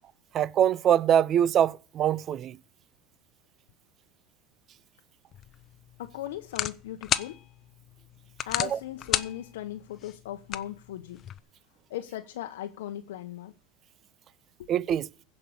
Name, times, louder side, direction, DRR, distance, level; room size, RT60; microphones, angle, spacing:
voice 1, 0.3-2.6 8.7-8.8 14.7-15.1, right 10 dB, 40° right, 0.5 m, -23 dB
sound 1, 5.3-11.4, left 10 dB, 40° left, 0.7 m, -35 dB
voice 2, 6.0-7.4 8.5-11.2 11.9-13.5 14.6-14.7, left 12 dB, 85° left, 0.8 m, -37 dB
15.5 x 5.4 x 7.7 m
supercardioid pair, 115°, 0 cm